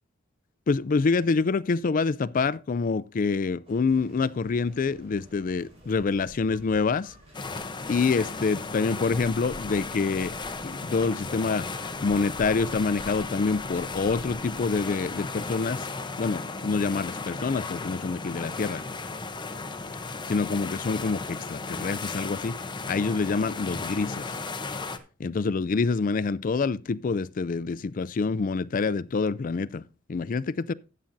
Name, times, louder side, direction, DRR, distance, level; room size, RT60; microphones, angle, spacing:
voice 1, 0.7-7.1 7.9-10.4 10.6-11.7 12.0-15.9 16.2-18.8 20.3-22.6 22.9-24.3 25.2-29.8 30.1-30.7, left 4 dB, 45° left, 0.4 m, -26 dB
sound 1, 3.6-14.9, equal, 30° right, 5.8 m, -49 dB
sound 2, 7.3-25.0, left 3 dB, 25° left, 0.8 m, -35 dB
13.0 x 8.8 x 2.7 m
head